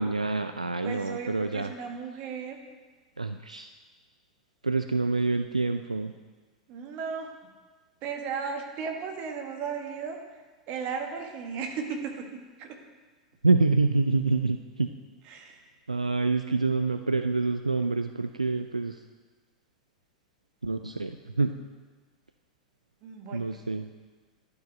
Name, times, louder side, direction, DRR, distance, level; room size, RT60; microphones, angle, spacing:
voice 1, 0.0-1.7 3.2-3.7 4.6-6.1 13.4-14.9 15.9-19.0 20.6-21.6 23.3-23.8, right 3 dB, 85° right, 8 dB, 0.3 m, -27 dB
voice 2, 0.8-2.6 6.7-7.4 8.0-12.3 12.6-12.8 15.2-15.7 23.0-23.6, right 6 dB, 40° right, 3 dB, 1.4 m, -36 dB
12.0 x 4.9 x 5.4 m, 1.3 s
figure-of-eight pair, 90°, 4 cm